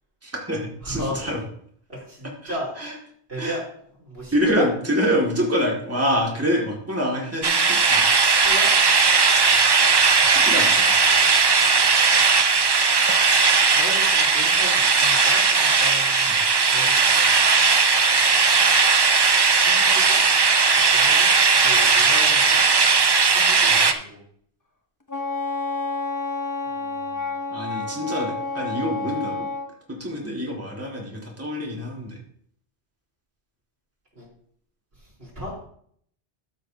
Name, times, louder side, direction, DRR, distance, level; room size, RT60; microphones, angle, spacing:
voice 1, 0.2-1.4 1.9-2.0 2.4-3.0 3.4-3.6 4.3-8.1 10.2-11.0 16.3-16.4 23.7-23.8 27.5-29.5 29.9-32.2, equal, 15° right, -3 dB, 2.1 m, -26 dB
voice 2, 0.8-1.2 1.9-2.7 3.3-3.6 4.0-4.7 8.3-8.7 13.7-16.3 16.6-17.5 19.6-20.2 20.7-22.6 23.3-24.2 26.6-27.3 34.1-34.3 35.0-35.6, equal, 65° right, -4 dB, 4.3 m, -35 dB
sound 1, 7.4-23.9, right 4 dB, 35° right, 0.4 m, -18 dB
Wind instrument woodwind instrument, 25.1-29.7, left 3 dB, 20° left, 0.8 m, -29 dB
13.5 x 6.4 x 2.8 m, 0.63 s
omnidirectional pair, 1.1 m